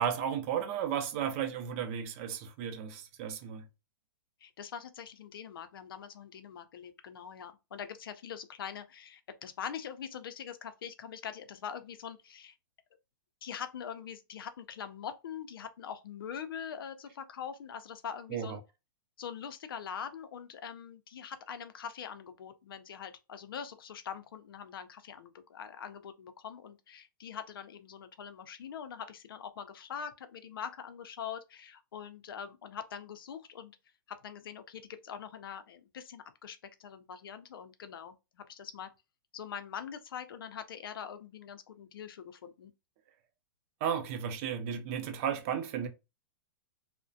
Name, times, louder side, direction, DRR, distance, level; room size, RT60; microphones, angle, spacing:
voice 1, 0.0-3.7 18.3-18.6 43.8-45.9, right 8 dB, 35° right, 0.5 m, -34 dB
voice 2, 4.4-12.5 13.4-18.6 19.2-33.8 34.1-38.9 39.3-42.7, left 8 dB, 75° left, 0.5 m, -43 dB
2.3 x 2.1 x 2.6 m
hypercardioid pair, 150°, 12 cm